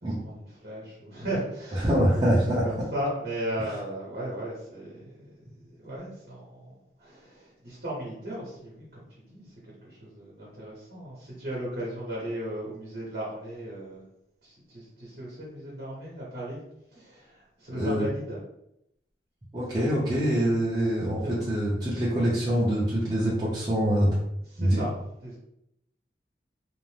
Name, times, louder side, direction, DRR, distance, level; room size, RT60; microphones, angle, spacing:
voice 1, 0.0-9.5 9.8-14.0 14.4-16.6 16.9-18.4 24.5-25.4, right 1 dB, 55° right, -6 dB, 0.9 m, -36 dB
voice 2, 1.8-2.6 17.7-18.1 19.5-21.2 21.5-24.1 24.6-24.8, equal, 25° right, -8 dB, 0.5 m, -24 dB
2.5 x 2.0 x 3.2 m, 0.79 s
head